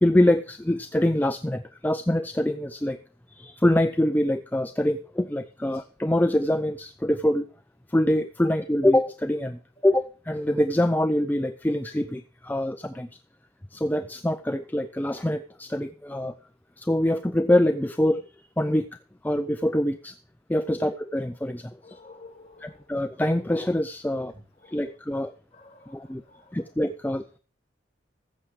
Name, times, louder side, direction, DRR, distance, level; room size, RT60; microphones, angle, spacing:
voice 1, 0.0-3.0 3.4-7.4 7.9-13.1 13.7-16.3 16.8-18.2 18.6-18.9 19.2-20.1 20.5-21.7 22.6-24.3 24.7-25.3 25.9-26.2 26.5-27.4, left 1 dB, 10° left, 0.4 m, -24 dB
voice 2, 21.8-22.8 24.6-24.8 25.5-26.7, left 3 dB, 30° left, 2.8 m, -51 dB
14.5 x 7.2 x 4.8 m
head